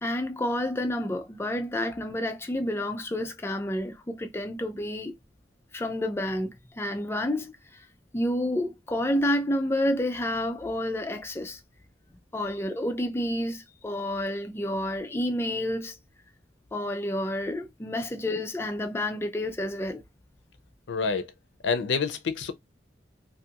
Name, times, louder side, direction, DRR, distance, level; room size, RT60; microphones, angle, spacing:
voice 1, 0.0-5.1 5.7-6.5 6.8-7.8 8.1-11.6 12.3-16.0 16.7-20.0, left 1 dB, 15° left, 0.4 m, -29 dB
voice 2, 20.9-21.3 21.6-22.5, left 5 dB, 90° left, 0.5 m, -27 dB
2.5 x 2.4 x 2.7 m
head